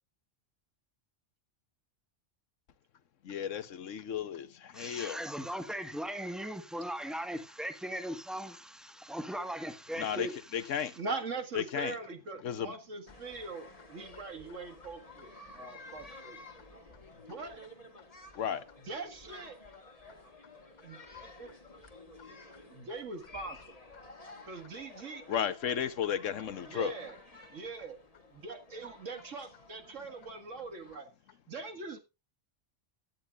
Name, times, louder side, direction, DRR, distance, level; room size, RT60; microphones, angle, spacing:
voice 1, 3.2-5.2 10.0-10.3 10.5-10.9 11.5-11.9 12.4-12.7 18.3-18.6 25.3-26.9, left 8 dB, 80° left, 1.3 m, -33 dB
voice 2, 4.7-11.0, equal, ahead, 1.3 m, -39 dB
voice 3, 11.0-16.4 17.3-17.7 18.8-19.6 20.8-21.5 22.7-23.6 24.5-25.4 26.7-27.2 27.5-28.0 28.3-31.1 31.5-32.0, right 3 dB, 80° right, 2.1 m, -42 dB
sound 1, 13.1-31.0, left 2 dB, 30° left, 1.7 m, -53 dB
16.5 x 10.5 x 2.4 m
omnidirectional pair, 1.3 m